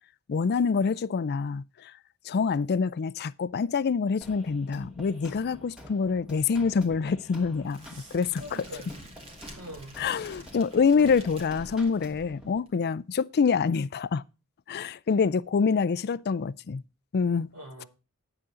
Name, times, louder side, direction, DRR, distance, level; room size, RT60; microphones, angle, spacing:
voice 1, 0.3-1.9 2.3-7.9 8.1-8.6 10.0-14.2 14.7-16.8 17.1-17.5, left 5 dB, 45° left, 0.4 m, -26 dB
sound 1, 4.2-12.6, left 1 dB, 5° right, 2.1 m, -48 dB
Crackle, 7.6-12.7, right 1 dB, 25° right, 2.2 m, -50 dB
voice 2, 7.8-9.0 9.6-10.0 17.5-17.9, equal, 80° right, 5.5 m, -44 dB
9.7 x 8.1 x 3.8 m
head